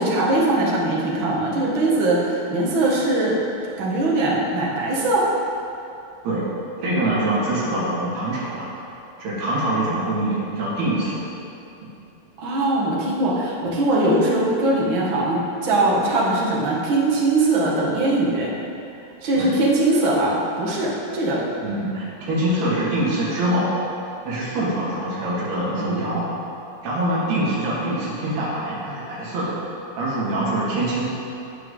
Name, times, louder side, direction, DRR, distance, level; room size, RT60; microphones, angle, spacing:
voice 1, 0.0-3.4 3.8-5.3 12.4-18.5 19.2-21.4, right 2 dB, 55° right, -5 dB, 1.4 m, -21 dB
voice 2, 6.8-8.7 9.2-11.2 19.4-19.5 21.6-23.7 24.2-26.3 26.8-29.6 30.0-31.0, right 1 dB, 75° right, -7 dB, 4.2 m, -24 dB
17.5 x 6.0 x 3.9 m, 2.7 s
omnidirectional pair, 4.7 m